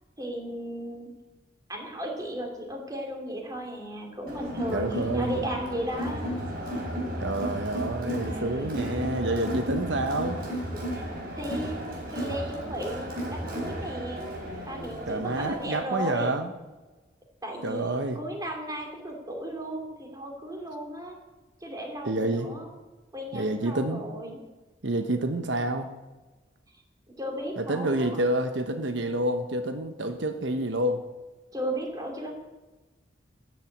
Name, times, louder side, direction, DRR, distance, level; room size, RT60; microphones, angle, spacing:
voice 1, 0.2-1.1 1.7-6.3 8.2-8.9 10.9-11.0 11.4-14.2 14.7-16.3 17.4-21.2 21.6-22.7 23.1-24.4 27.2-28.2 31.5-32.4, right 1 dB, 20° right, 2 dB, 2.9 m, -35 dB
Crowd, 4.3-15.8, equal, 55° right, 4.0 m, -34 dB
voice 2, 4.7-5.3 7.2-10.4 15.1-16.5 17.6-18.2 22.0-22.5 23.3-24.1 24.8-25.9 27.6-31.0, right 1 dB, 85° right, 7 dB, 1.1 m, -28 dB
13.0 x 7.7 x 8.7 m, 1.2 s
head